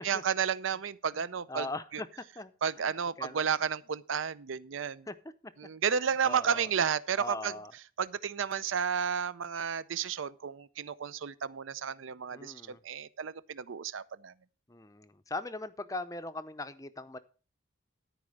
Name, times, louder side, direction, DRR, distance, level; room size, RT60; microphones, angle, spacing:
voice 1, 0.0-1.7 1.9-2.0 2.6-5.1 5.6-7.5 8.0-14.3, right 7 dB, 75° right, 0.5 m, -32 dB
voice 2, 1.5-3.4 5.1-5.2 5.9-6.7 7.2-7.7 12.3-12.8 14.7-17.2, left 2 dB, 15° left, 0.5 m, -40 dB
13.0 x 4.9 x 6.4 m
head